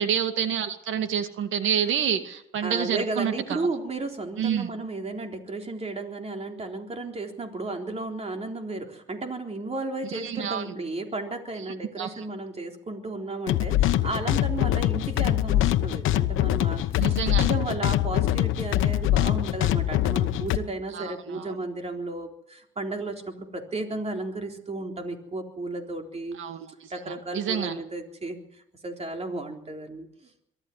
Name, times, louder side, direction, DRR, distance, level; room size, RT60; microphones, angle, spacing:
voice 1, 0.0-3.6 4.4-4.7 10.1-10.7 12.0-12.3 17.0-17.4 20.9-21.6 26.4-27.8, right 8 dB, 80° right, 8 dB, 2.3 m, -28 dB
voice 2, 2.6-26.4 26.9-28.4 28.8-30.1, right 2 dB, 30° right, 3 dB, 3.8 m, -34 dB
sound 1, 13.5-20.6, left 13 dB, 85° left, 1.0 m, -24 dB
23.5 x 13.0 x 9.5 m, 0.78 s
cardioid pair, 90°, 20 cm